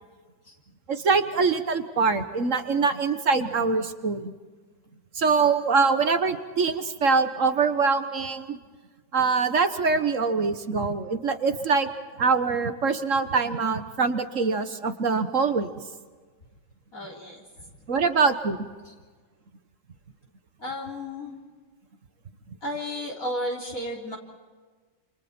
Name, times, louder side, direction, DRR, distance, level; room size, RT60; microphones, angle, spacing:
voice 1, 0.9-4.3 5.1-8.6 9.1-11.9 12.2-15.7 17.9-18.6, right 4 dB, 45° right, 9 dB, 1.5 m, -24 dB
voice 2, 16.9-17.4 18.9-19.0 20.6-21.3 22.6-24.2, left 1 dB, 45° left, -1 dB, 4.2 m, -33 dB
28.5 x 28.0 x 4.4 m, 1.4 s
omnidirectional pair, 2.0 m